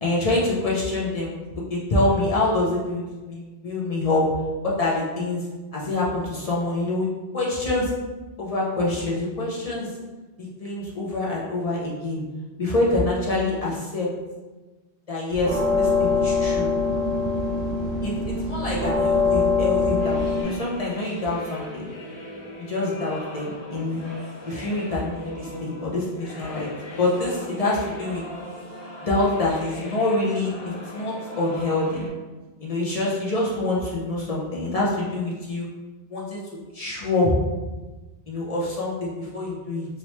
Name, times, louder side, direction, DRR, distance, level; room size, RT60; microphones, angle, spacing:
voice 1, 0.0-1.3 1.7-4.3 4.6-5.4 5.7-7.1 7.3-7.9 8.4-9.9 10.4-12.2 12.6-14.1 15.1-16.7 18.0-21.9 22.6-24.0 24.5-26.7 27.0-28.2 29.1-32.1 32.6-35.7 36.1-36.4 36.7-37.4 38.3-39.9, left 2 dB, 40° left, -5 dB, 0.6 m, -26 dB
sound 1, 15.3-20.4, left 4 dB, 75° right, 0.8 m, -23 dB
sound 2, 20.0-32.1, left 1 dB, 65° left, 1.0 m, -39 dB
3.0 x 2.8 x 3.0 m, 1.2 s
omnidirectional pair, 1.1 m